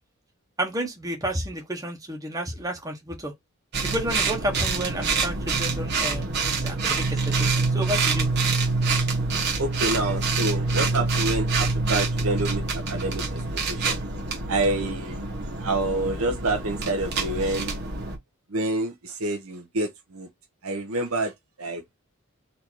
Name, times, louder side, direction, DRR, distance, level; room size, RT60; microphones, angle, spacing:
voice 1, 0.6-3.3 3.8-8.3, right 1 dB, 15° right, 1.1 m, -31 dB
sound 1, 3.7-18.2, right 3 dB, 50° right, 1.3 m, -26 dB
voice 2, 9.3-14.0 14.5-15.2 15.6-17.7 18.5-20.3 20.6-21.8, right 2 dB, 75° right, 1.0 m, -28 dB
4.1 x 2.8 x 4.5 m
head